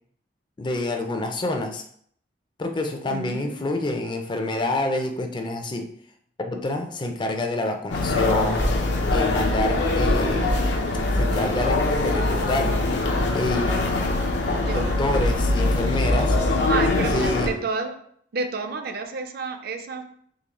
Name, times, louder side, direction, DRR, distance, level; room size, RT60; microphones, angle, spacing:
voice 1, 0.6-1.8 2.6-5.9 6.4-10.5 11.2-12.8 13.3-13.9 14.7-16.4 17.1-17.5, left 2 dB, 25° left, 5 dB, 0.4 m, -27 dB
voice 2, 3.1-3.9 14.5-15.0 16.7-18.0 18.3-20.0, right 4 dB, 55° right, 6 dB, 0.4 m, -30 dB
sound 1, 7.9-17.5, left 2 dB, 70° left, 0.6 m, -22 dB
3.8 x 2.7 x 3.0 m, 0.62 s
head